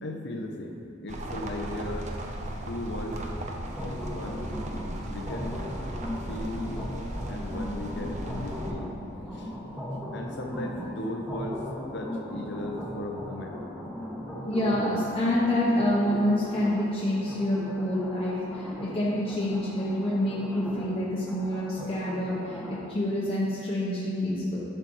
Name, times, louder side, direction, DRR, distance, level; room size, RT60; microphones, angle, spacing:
voice 1, 0.0-2.2 2.7-3.2 3.8-4.6 5.1-5.7 6.3-6.9 7.3-9.0 9.3-9.5 10.1-13.6, left 1 dB, 60° left, 2 dB, 0.8 m, -37 dB
sound 1, 1.1-8.7, right 1 dB, 40° right, 0.6 m, -36 dB
sound 2, 3.6-22.8, left 1 dB, ahead, 1.1 m, -38 dB
voice 2, 14.5-24.6, left 1 dB, 30° left, -7 dB, 0.9 m, -27 dB
11.0 x 5.7 x 3.1 m, 2.6 s
head